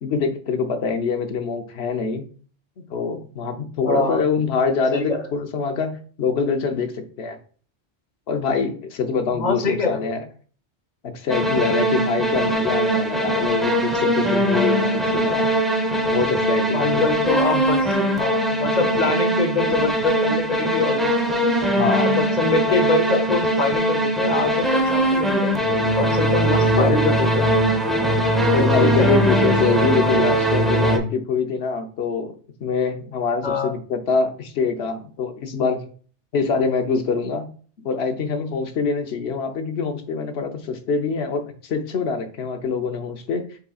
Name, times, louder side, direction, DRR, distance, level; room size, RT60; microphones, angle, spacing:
voice 1, 0.0-2.2 2.8-7.4 8.3-10.2 11.0-15.5 16.1-17.1 21.7-22.1 26.6-27.0 28.5-32.3 32.6-35.8 36.3-37.5 37.8-43.5, left 5 dB, 65° left, 6 dB, 1.0 m, -24 dB
voice 2, 3.9-4.3 4.9-5.2 9.3-10.1 16.7-21.5 22.0-25.6 26.0-27.5 28.8-29.1 33.4-33.7, left 3 dB, 45° left, 7 dB, 0.8 m, -24 dB
sound 1, 11.3-31.0, right 1 dB, ahead, 0.6 m, -20 dB
5.6 x 4.0 x 2.3 m, 0.42 s
omnidirectional pair, 1.2 m